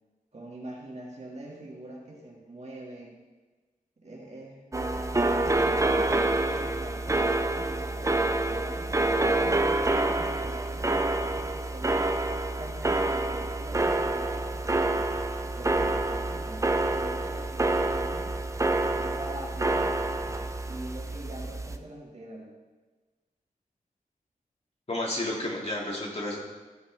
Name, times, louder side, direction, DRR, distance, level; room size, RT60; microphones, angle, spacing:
voice 1, 0.3-3.2 4.0-4.7 5.3-8.9 9.2-12.1 12.6-15.1 15.5-16.7 16.9-18.3 18.9-20.0 20.6-22.5, right 1 dB, 50° right, -3 dB, 1.9 m, -43 dB
sound 1, 4.7-21.8, right 2 dB, 20° right, 0.5 m, -27 dB
voice 2, 24.9-26.4, left 1 dB, 45° left, -3 dB, 2.4 m, -31 dB
14.0 x 5.5 x 4.0 m, 1.3 s
wide cardioid pair, 100°, 15 cm